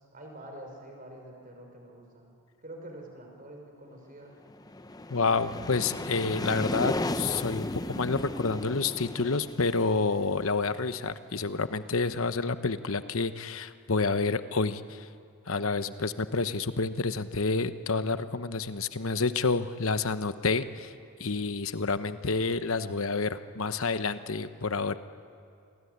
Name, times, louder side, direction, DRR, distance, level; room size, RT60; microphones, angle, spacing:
voice 1, 0.1-2.3 2.6-4.4, right 1 dB, 40° right, 2 dB, 5.7 m, -46 dB
sound 1, 4.5-11.2, left 2 dB, 15° left, 0.7 m, -35 dB
voice 2, 5.1-15.1 15.5-20.9 21.2-25.0, left 4 dB, 65° left, 11 dB, 1.0 m, -29 dB
27.5 x 22.0 x 9.6 m, 2.4 s
head